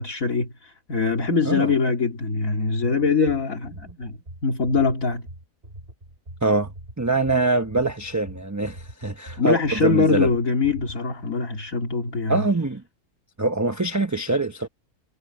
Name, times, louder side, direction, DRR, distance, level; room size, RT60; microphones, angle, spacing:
voice 1, 0.0-4.2 4.4-5.3 9.4-12.4, left 4 dB, 60° left, 2.8 m, -23 dB
sound 1, 3.3-11.0, right 1 dB, 40° right, 6.2 m, -42 dB
voice 2, 6.4-6.7 7.0-10.3 12.3-12.8 13.4-14.7, right 2 dB, 15° right, 0.8 m, -24 dB
omnidirectional pair, 1.6 m